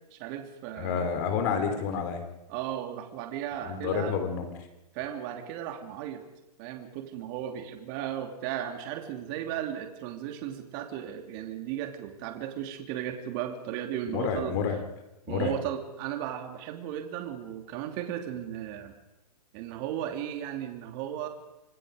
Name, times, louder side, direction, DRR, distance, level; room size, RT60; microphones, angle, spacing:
voice 1, 0.1-1.1 1.5-1.9 2.5-4.2 4.9-6.2 6.6-14.6 15.3-18.9 19.5-21.3, right 10 dB, 30° right, 5 dB, 2.9 m, -35 dB
voice 2, 0.8-2.2 3.6-4.5 14.1-14.8 15.3-15.5, left 6 dB, 35° left, 6 dB, 4.4 m, -29 dB
27.0 x 20.5 x 5.2 m, 0.96 s
hypercardioid pair, 155°, 20 cm